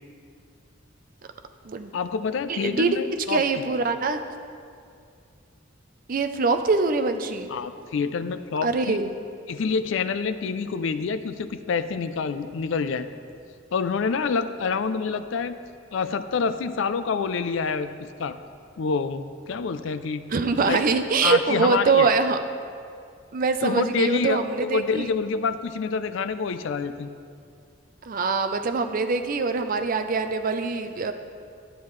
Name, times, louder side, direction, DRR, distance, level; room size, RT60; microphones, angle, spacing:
voice 1, 1.9-3.6 7.5-9.0 9.5-13.1 13.7-15.6 15.9-17.9 18.2-18.4 18.8-20.2 20.6-20.8 21.2-22.1 23.6-27.1, left 5 dB, 65° left, 11 dB, 0.4 m, -27 dB
voice 2, 2.5-3.0 3.3-4.2 6.1-7.5 8.6-9.1 20.3-22.4 23.3-25.1 28.1-31.1, right 4 dB, 45° right, 8 dB, 0.5 m, -23 dB
10.0 x 9.1 x 3.2 m, 2.3 s
head